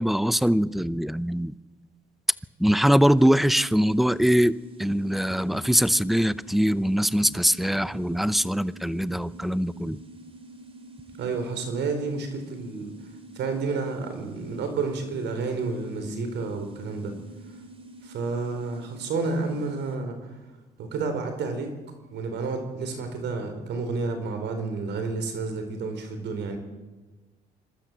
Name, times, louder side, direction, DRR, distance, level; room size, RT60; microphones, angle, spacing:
voice 1, 0.0-1.5 2.6-10.0, equal, ahead, 18 dB, 0.6 m, -22 dB
sound 1, 3.2-20.0, right 1 dB, 30° right, 3.3 m, -47 dB
voice 2, 11.2-12.9 13.3-17.1 18.0-20.3 20.8-21.7 22.1-26.6, right 4 dB, 70° right, 6 dB, 4.5 m, -30 dB
27.0 x 13.0 x 7.5 m, 1.2 s
cardioid pair, 85°, 19 cm